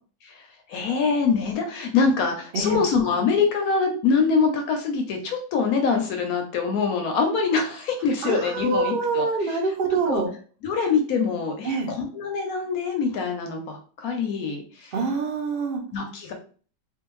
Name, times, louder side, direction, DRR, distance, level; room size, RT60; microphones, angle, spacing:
voice 1, 0.2-9.6 10.1-10.2 10.6-14.9 15.9-16.3, left 5 dB, 70° left, 4 dB, 0.9 m, -24 dB
voice 2, 8.2-10.3 11.6-11.9 14.9-15.8, right 3 dB, 80° right, 0 dB, 0.5 m, -25 dB
2.6 x 2.3 x 3.0 m, 0.41 s
omnidirectional pair, 1.8 m